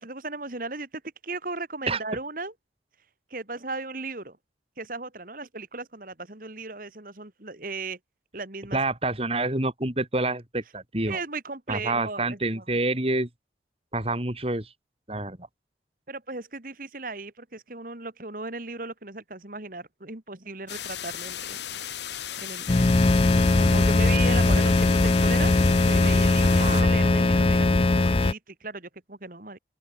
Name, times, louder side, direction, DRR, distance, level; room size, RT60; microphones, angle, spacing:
voice 1, 0.0-2.5 3.3-4.4 4.8-8.0 8.3-8.8 11.1-12.6 16.1-21.6 21.9-29.6, right 3 dB, 50° right, 2.4 m, -37 dB
voice 2, 8.7-11.2 11.7-13.3 13.9-14.7 15.1-15.4 26.6-26.9, right 2 dB, 35° right, 3.4 m, -27 dB
sound 1, 20.7-26.8, left 10 dB, 75° left, 1.5 m, -36 dB
sound 2, 22.7-28.3, left 2 dB, 30° left, 0.5 m, -20 dB
open air
head